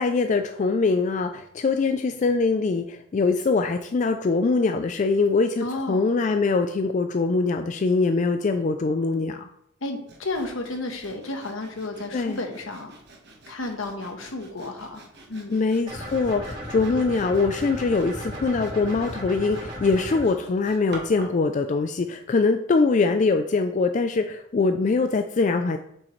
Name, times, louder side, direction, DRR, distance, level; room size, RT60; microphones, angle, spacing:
voice 1, 0.0-9.5 12.1-12.4 15.5-25.8, left 4 dB, 35° left, 7 dB, 0.3 m, -23 dB
voice 2, 5.6-6.1 9.8-12.9 13.5-15.0 15.3-15.6, left 2 dB, 75° left, 4 dB, 1.2 m, -32 dB
Sawing, 10.1-21.4, right 2 dB, 55° right, 1.3 m, -48 dB
sound 1, 15.9-20.3, equal, 25° right, 2.7 m, -35 dB
7.3 x 6.2 x 3.1 m, 0.72 s
head